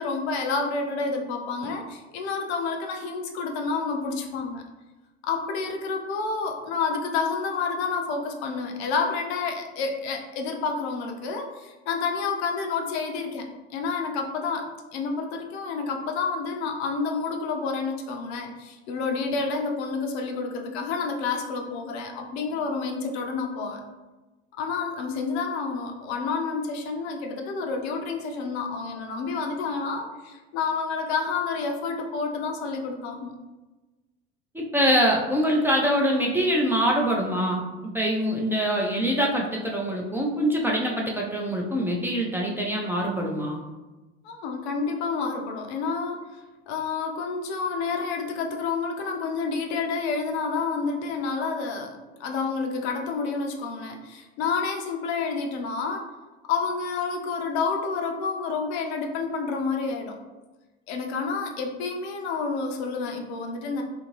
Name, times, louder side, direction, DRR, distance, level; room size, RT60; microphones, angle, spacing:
voice 1, 0.0-4.6 5.2-23.8 24.5-33.3 44.2-46.2 46.7-56.1 56.5-60.2 60.9-63.8, left 4 dB, 75° left, 3 dB, 0.6 m, -29 dB
voice 2, 34.5-37.6 37.9-43.6, equal, 5° right, -1 dB, 0.4 m, -24 dB
2.8 x 2.6 x 2.9 m, 1.2 s
hypercardioid pair, 80°, 33 cm